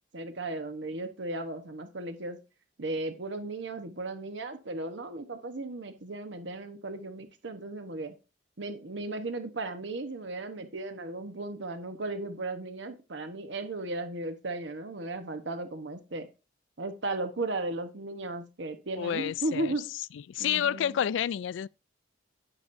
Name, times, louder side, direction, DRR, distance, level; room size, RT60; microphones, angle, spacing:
voice 1, 0.1-2.4 2.8-8.1 8.6-16.3 16.8-19.8 20.4-21.0, right 2 dB, 70° right, 1.0 m, -36 dB
voice 2, 19.0-19.7 20.1-21.7, left 9 dB, 75° left, 0.3 m, -29 dB
9.9 x 8.1 x 2.6 m
head